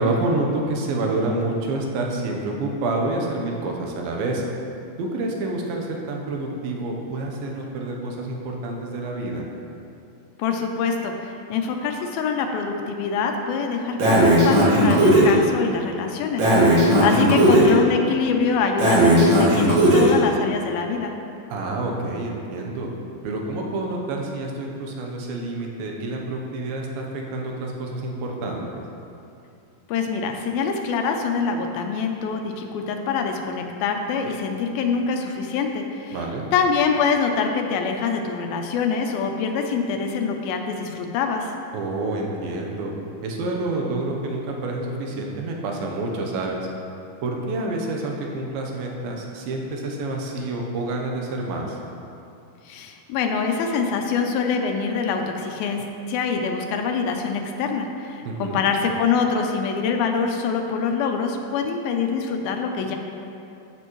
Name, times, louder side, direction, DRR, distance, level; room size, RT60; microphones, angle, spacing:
voice 1, 0.0-4.4 5.0-9.5 21.5-22.9 23.2-28.8 36.1-36.5 41.7-42.9 43.2-46.7 47.2-51.8 58.3-58.7, right 2 dB, 75° right, 0 dB, 2.7 m, -28 dB
voice 2, 10.4-21.1 29.9-36.2 36.5-41.6 52.7-63.0, left 5 dB, 80° left, 4 dB, 2.4 m, -25 dB
Breathing, 14.0-15.3 16.4-17.7 18.8-20.1, right 1 dB, 50° right, 1.6 m, -16 dB
14.0 x 6.1 x 3.1 m, 2.6 s
omnidirectional pair, 4.4 m